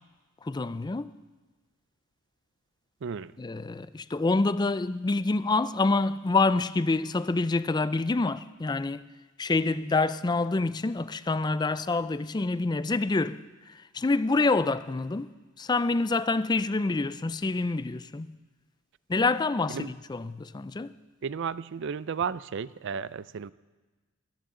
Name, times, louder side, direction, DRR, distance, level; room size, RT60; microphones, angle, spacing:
voice 1, 0.4-1.1 3.4-9.1 9.4-18.4 19.1-20.9, left 3 dB, 20° left, 0.4 m, -27 dB
voice 2, 3.0-3.3 19.7-19.9 21.2-23.5, right 6 dB, 60° right, 0.4 m, -33 dB
22.5 x 14.0 x 3.8 m
head